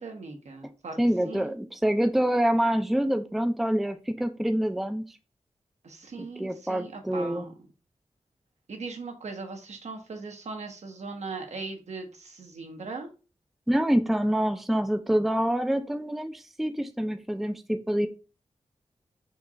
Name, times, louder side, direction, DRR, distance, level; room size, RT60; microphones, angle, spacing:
voice 1, 0.0-1.0 1.2-1.5 5.8-7.5 8.7-13.1, right 4 dB, 80° right, 3 dB, 1.1 m, -39 dB
voice 2, 1.0-5.0 6.4-7.5 13.7-18.1, equal, ahead, 7 dB, 0.4 m, -26 dB
4.4 x 2.4 x 4.1 m, 0.32 s
wide cardioid pair, 115°, 12 cm